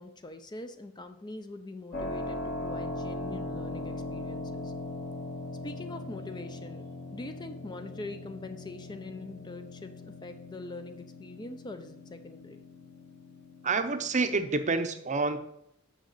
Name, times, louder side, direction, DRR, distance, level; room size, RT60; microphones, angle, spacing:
voice 1, 0.0-4.7 5.6-12.6, left 2 dB, 20° left, 8 dB, 0.4 m, -43 dB
Keyboard (musical), 1.9-14.4, left 2 dB, 50° left, 1.8 m, -40 dB
voice 2, 13.6-15.4, right 3 dB, 35° right, 9 dB, 0.7 m, -28 dB
6.5 x 6.3 x 6.5 m, 0.77 s
head